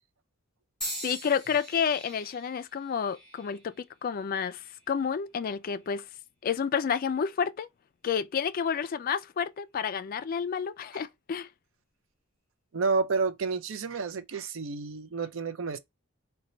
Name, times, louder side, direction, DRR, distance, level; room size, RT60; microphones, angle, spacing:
sound 1, 0.8-4.9 5.6-6.1 7.0-7.2, equal, 5° left, 2.3 m, -43 dB
voice 1, 1.0-6.1 6.4-7.7 8.0-11.5, left 7 dB, 45° left, 0.3 m, -30 dB
voice 2, 12.7-15.8, right 4 dB, 65° right, 0.5 m, -30 dB
4.2 x 2.2 x 3.8 m
head